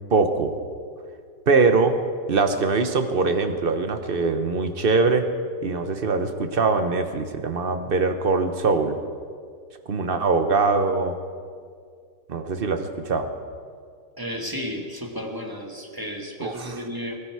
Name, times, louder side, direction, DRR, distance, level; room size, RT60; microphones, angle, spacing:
voice 1, 0.1-0.5 1.5-1.9 2.3-5.3 5.6-9.0 9.9-11.2 12.3-13.3 16.4-16.8, right 4 dB, 45° right, 7 dB, 0.8 m, -22 dB
voice 2, 14.2-17.2, equal, 15° right, 1 dB, 1.4 m, -33 dB
20.0 x 12.5 x 4.8 m, 2.1 s
omnidirectional pair, 1.9 m